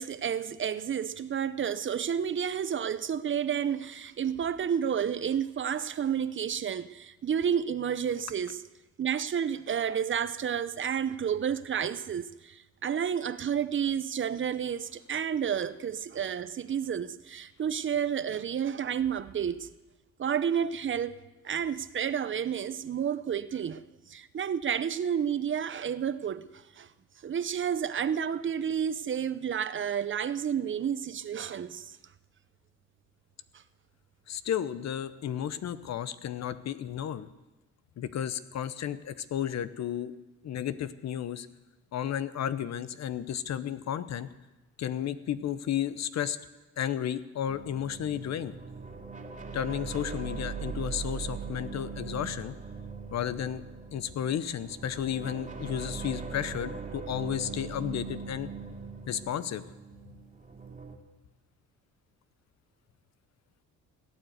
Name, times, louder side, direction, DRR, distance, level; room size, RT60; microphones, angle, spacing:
voice 1, 0.0-8.6 9.0-19.7 20.2-21.2 21.4-23.8 24.1-26.9 27.2-32.0, right 8 dB, 40° right, 0.7 m, -30 dB
voice 2, 34.3-37.3 38.0-40.1 40.4-41.5 41.9-44.3 44.8-46.4 46.8-48.6 49.5-52.5 53.1-53.6 53.9-58.5 59.1-59.6, left 10 dB, 60° left, 0.9 m, -33 dB
sound 1, 47.5-61.0, right 5 dB, 25° right, 2.3 m, -40 dB
16.5 x 9.3 x 8.1 m
cardioid pair, 90°, 30 cm